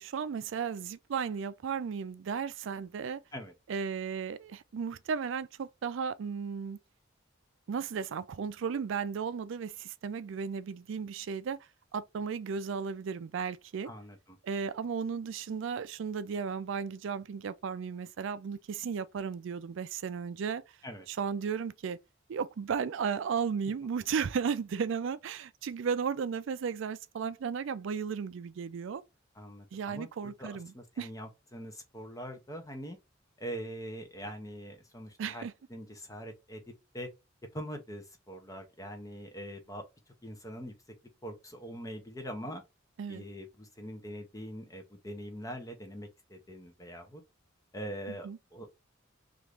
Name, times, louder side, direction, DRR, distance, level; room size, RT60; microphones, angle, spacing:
voice 1, 0.0-3.2 3.7-6.8 7.7-11.6 11.9-13.9 14.4-20.6 21.1-22.0 22.3-29.0 29.7-31.1 35.2-35.5 43.0-43.2 48.1-48.4, right 6 dB, 65° right, 0.4 m, -35 dB
voice 2, 13.8-14.4 20.8-21.1 29.3-33.0 33.4-35.4 35.7-36.6 36.9-37.1 37.5-39.8 40.2-40.7 41.2-42.6 43.1-47.2 47.7-48.7, equal, 15° left, 0.6 m, -43 dB
3.0 x 2.5 x 3.2 m
head